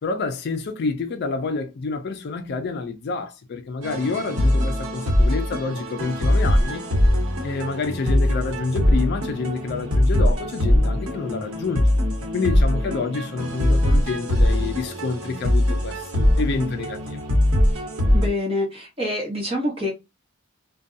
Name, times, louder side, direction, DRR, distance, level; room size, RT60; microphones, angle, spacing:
voice 1, 0.0-6.8 7.4-11.9 12.3-17.2, left 4 dB, 50° left, 0.4 m, -28 dB
sound 1, 3.8-18.3, left 1 dB, 75° right, 1.0 m, -21 dB
voice 2, 18.1-19.9, left 1 dB, 25° right, 1.1 m, -26 dB
2.5 x 2.2 x 2.5 m
head